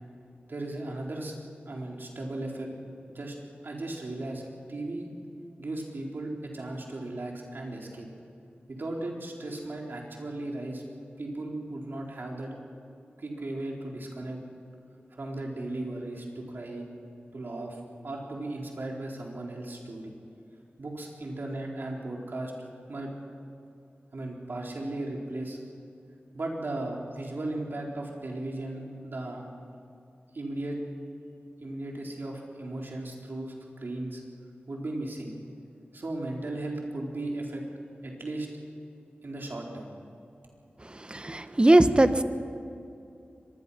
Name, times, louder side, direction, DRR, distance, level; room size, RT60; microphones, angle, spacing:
voice 1, 0.5-1.3 1.7-2.7 3.1-3.4 3.6-5.1 5.6-8.1 8.7-10.8 11.2-12.5 13.2-14.4 15.1-16.9 17.3-20.1 20.8-22.5 22.9-23.1 24.1-25.6 26.3-29.4 30.3-30.8 31.6-34.2 34.7-35.3 35.9-37.6 38.0-38.5 39.2-39.9, right 2 dB, 65° right, -1 dB, 4.3 m, -36 dB
voice 2, 41.1-42.2, right 1 dB, 25° right, 10 dB, 1.2 m, -20 dB
24.5 x 21.5 x 5.8 m, 2.6 s
cardioid pair, 50°, 4 cm